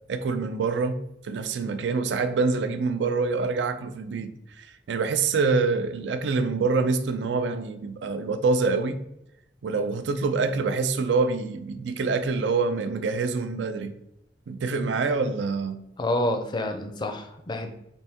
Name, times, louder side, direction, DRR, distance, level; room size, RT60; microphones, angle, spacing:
voice 1, 0.1-1.0 1.2-9.0 9.6-14.0 14.5-15.8, right 4 dB, 85° right, 0.4 m, -26 dB
voice 2, 16.0-17.7, left 1 dB, 25° left, 0.4 m, -28 dB
4.0 x 2.6 x 3.4 m
head